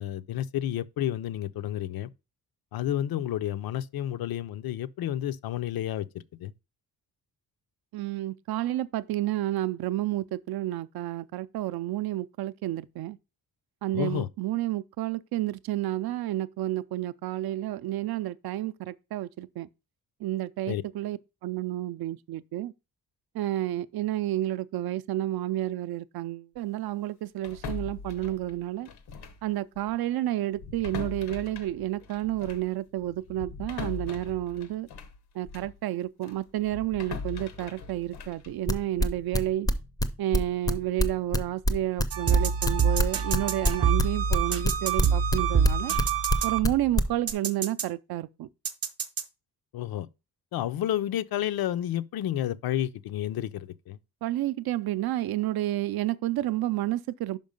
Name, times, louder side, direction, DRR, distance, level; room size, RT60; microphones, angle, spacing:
voice 1, 0.0-2.1 2.7-6.0 6.4-6.5 13.9-14.3 20.7-20.8 49.7-50.1 50.5-54.0, left 12 dB, 70° left, 0.5 m, -30 dB
voice 2, 7.9-13.2 13.8-19.7 20.2-22.7 23.3-28.9 29.4-34.9 35.4-39.7 40.2-45.9 46.4-48.5 54.2-57.4, right 14 dB, 80° right, 0.5 m, -30 dB
sound 1, 27.4-29.5 29.8-30.0 30.5-35.8 36.2-39.3, left 5 dB, 90° left, 1.1 m, -41 dB
sound 2, 38.5-42.0 42.3-46.0 46.3-46.7 47.0-47.3, equal, 10° left, 0.4 m, -24 dB
sound 3, 42.1-46.9 47.3-47.8 48.6-49.2, right 6 dB, 40° right, 0.6 m, -26 dB
5.5 x 5.2 x 5.1 m
wide cardioid pair, 170°, 37 cm